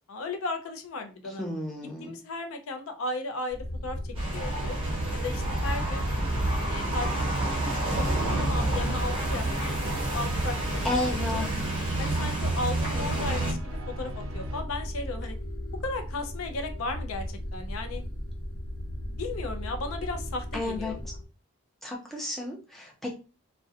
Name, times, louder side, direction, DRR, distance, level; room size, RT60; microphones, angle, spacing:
voice 1, 0.1-1.5 2.0-4.8 5.1-6.1 6.7-7.4 7.8-8.0 8.4-9.5 9.8-10.6 10.8-11.0 11.3-11.5 12.0-15.4 15.8-18.0 19.0-21.0, left 3 dB, 70° left, 7 dB, 0.4 m, -35 dB
voice 2, 1.4-2.2 10.8-11.6 12.9-13.3 20.5-21.1 21.8-23.2, left 2 dB, ahead, -2 dB, 0.5 m, -33 dB
sound 1, 3.5-21.2, equal, 35° left, 1.0 m, -36 dB
sound 2, 4.1-13.5, right 1 dB, 25° right, 0.9 m, -29 dB
sound 3, 4.3-14.6, right 3 dB, 65° right, 0.5 m, -41 dB
2.3 x 2.1 x 2.6 m, 0.32 s
head